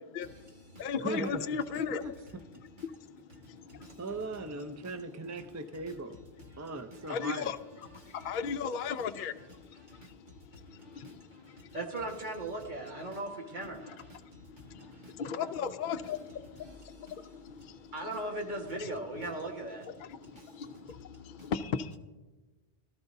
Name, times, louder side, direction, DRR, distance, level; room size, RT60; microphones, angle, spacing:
voice 1, 0.1-2.0 2.8-3.0 3.5-4.0 7.1-7.6 7.9-11.8 13.8-16.2 16.6-18.1 18.7-18.9 20.0-22.0, left 6 dB, 55° left, 0.7 m, -37 dB
voice 2, 1.0-1.6 1.9-2.1 4.0-6.2 6.6-7.5 9.2-9.3 14.8-14.9, right 2 dB, 20° right, 0.4 m, -39 dB
voice 3, 3.7-4.0 8.0-8.2 9.9-10.1 10.8-14.2 14.6-14.7 17.9-19.9 20.4-20.5, right 2 dB, 45° right, 1.8 m, -39 dB
18.0 x 13.0 x 2.7 m
omnidirectional pair, 1.1 m